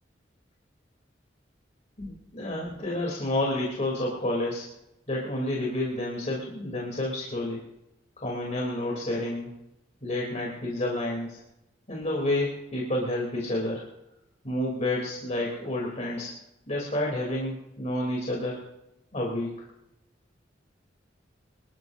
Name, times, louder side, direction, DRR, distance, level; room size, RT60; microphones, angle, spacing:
voice 1, 2.0-4.6 5.1-7.6 8.2-9.5 10.0-11.4 11.9-13.8 14.4-16.3 16.7-18.6 19.1-19.7, left 1 dB, 40° left, -3 dB, 3.4 m, -30 dB
25.0 x 14.0 x 2.7 m, 0.88 s
head